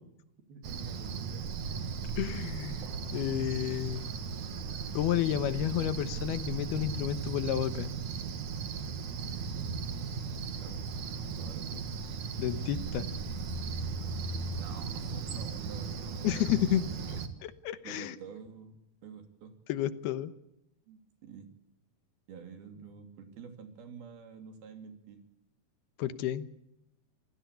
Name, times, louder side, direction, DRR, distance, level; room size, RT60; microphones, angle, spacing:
voice 1, 0.5-1.5 9.9-10.8 11.3-11.8 14.6-16.6 17.8-19.5 20.9-21.5 22.3-25.2, right 6 dB, 75° right, 6 dB, 4.8 m, -49 dB
Cricket, 0.6-17.3, right 5 dB, 55° right, 2.9 m, -37 dB
voice 2, 2.2-2.9 3.1-4.1 4.9-7.9 12.4-13.1 16.2-16.8 17.1-18.2 19.7-20.3 26.0-26.5, left 12 dB, 85° left, 13 dB, 3.1 m, -31 dB
27.5 x 17.0 x 8.3 m, 0.83 s
omnidirectional pair, 4.4 m